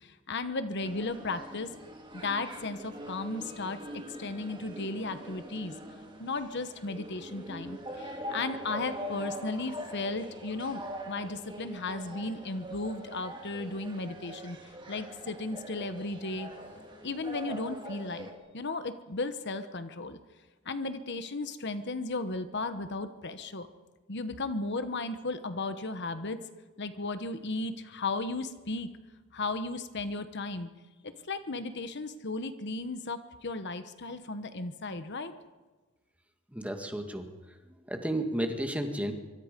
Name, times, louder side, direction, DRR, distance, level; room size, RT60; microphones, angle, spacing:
voice 1, 0.0-1.7 2.1-3.8 4.1-5.8 6.2-14.6 14.9-16.5 17.0-18.3 18.5-20.2 20.6-23.7 24.1-26.4 26.8-28.9 29.3-30.7 31.0-35.3, left 3 dB, 55° left, 10 dB, 1.2 m, -35 dB
sound 1, 0.8-18.3, equal, 20° right, 3.1 m, -43 dB
voice 2, 36.5-37.3 37.9-39.1, right 1 dB, 5° right, 5 dB, 1.9 m, -32 dB
25.5 x 24.5 x 5.3 m, 1.3 s
head